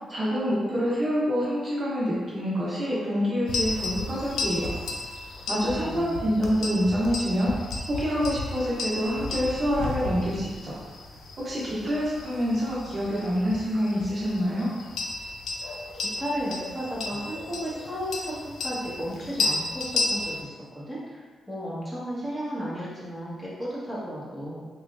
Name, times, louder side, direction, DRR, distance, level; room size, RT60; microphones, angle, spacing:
voice 1, 0.1-4.7 5.5-10.8 11.4-14.7, equal, 40° right, -7 dB, 0.8 m, -26 dB
sound 1, 3.5-20.4, left 2 dB, 80° left, 0.4 m, -33 dB
voice 2, 5.7-6.3 16.2-18.3 18.6-24.7, equal, ahead, -9 dB, 1.2 m, -34 dB
3.3 x 3.0 x 2.5 m, 1.4 s
cardioid pair, 95°, 0 cm